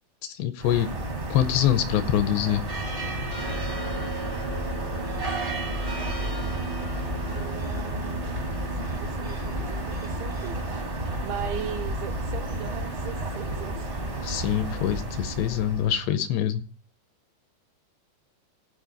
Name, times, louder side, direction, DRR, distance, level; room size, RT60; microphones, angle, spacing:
voice 1, 0.2-1.0 1.3-2.7 14.2-16.7, left 11 dB, 80° left, 2.7 m, -25 dB
sound 1, 0.6-16.1, right 1 dB, 45° right, 0.6 m, -31 dB
voice 2, 7.3-8.2 8.7-10.9 11.2-13.9, right 9 dB, 80° right, 3.2 m, -39 dB
15.5 x 5.3 x 6.7 m
omnidirectional pair, 5.4 m